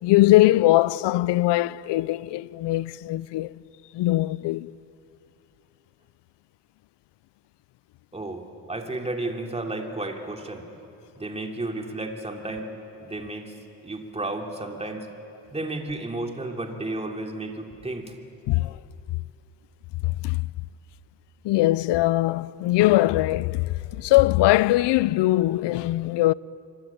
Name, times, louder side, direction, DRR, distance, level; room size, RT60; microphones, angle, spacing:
voice 1, 0.0-3.6 3.9-4.7 18.5-18.8 20.0-20.4 21.4-26.3, left 17 dB, 75° left, 0.6 m, -21 dB
voice 2, 8.1-10.6 11.2-12.7 13.0-13.5 13.8-15.1 15.5-18.1, right 2 dB, 15° right, 3.0 m, -32 dB
26.5 x 25.0 x 8.8 m
cardioid pair, 115°, 42 cm